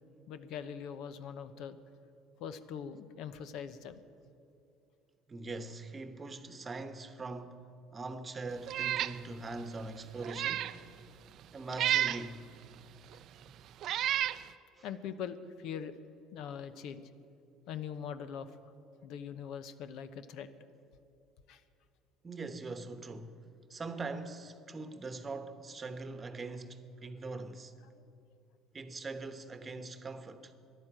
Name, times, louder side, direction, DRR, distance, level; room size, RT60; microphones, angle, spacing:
voice 1, 0.3-1.8 2.4-4.0 14.8-15.9 16.3-17.1 17.7-18.7 19.0-20.5 21.5-21.6, left 8 dB, 70° left, 0.8 m, -42 dB
voice 2, 5.3-7.6 7.9-10.7 11.5-12.5 14.8-14.9 22.2-23.3 23.7-27.7 28.7-30.5, right 3 dB, 25° right, 1.0 m, -42 dB
Meow, 8.7-9.2 9.6-9.7 10.2-10.8 11.7-12.2 13.1-13.2 13.8-14.4, right 12 dB, 60° right, 0.5 m, -31 dB
12.0 x 11.0 x 8.9 m
supercardioid pair, 90°, 0 cm